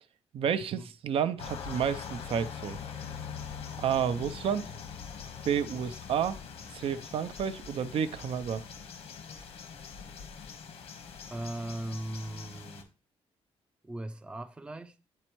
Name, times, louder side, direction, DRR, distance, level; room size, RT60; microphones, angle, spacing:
voice 1, 0.3-2.8 3.8-4.7 5.5-6.4 6.7-8.6, right 8 dB, 65° right, 0.5 m, -30 dB
sound 1, 1.4-12.8, left 7 dB, 80° left, 1.2 m, -43 dB
voice 2, 11.3-12.9 13.8-15.0, right 1 dB, 10° right, 0.4 m, -38 dB
10.0 x 4.2 x 3.0 m
wide cardioid pair, 155°, 10 cm